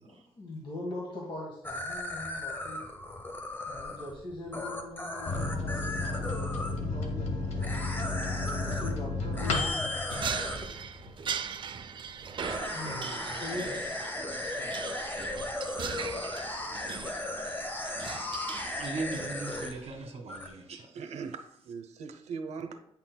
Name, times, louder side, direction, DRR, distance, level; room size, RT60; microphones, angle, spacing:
voice 1, 0.0-2.8 3.7-7.8 8.6-10.6 12.7-13.1 13.4-13.9, left 2 dB, 50° left, 1.4 m, -42 dB
sound 1, 1.6-6.7 7.6-8.9 9.3-10.7 12.4-19.9 20.3-20.5, left 2 dB, 20° left, 0.8 m, -36 dB
Microwave oven, 5.3-11.3 11.7-11.8 12.1-12.7, left 3 dB, 85° left, 1.0 m, -33 dB
sound 2, 10.1-19.8, right 7 dB, 45° right, 0.4 m, -39 dB
voice 2, 12.4-13.7 14.2-14.7 18.0-20.9, right 3 dB, 70° right, 1.6 m, -41 dB
voice 3, 20.7-22.8, right 5 dB, 85° right, 0.7 m, -40 dB
8.7 x 5.8 x 2.2 m
cardioid pair, 115°, 11 cm